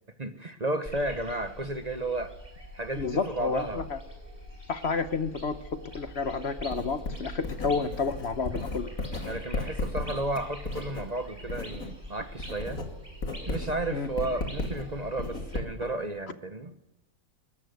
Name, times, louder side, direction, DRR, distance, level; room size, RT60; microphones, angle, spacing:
voice 1, 0.2-2.3 2.7-3.9 9.2-12.8 13.5-16.7, right 2 dB, 30° right, 9 dB, 1.1 m, -33 dB
sound 1, 0.8-15.6, equal, 15° right, 6.6 m, -45 dB
voice 2, 3.0-4.0 4.7-8.9 13.9-14.1, left 4 dB, 50° left, 11 dB, 1.2 m, -30 dB
Writing, 6.7-12.0 12.3-16.0, left 2 dB, 80° left, 2.8 m, -35 dB
20.5 x 13.5 x 9.4 m, 0.96 s
omnidirectional pair, 1.5 m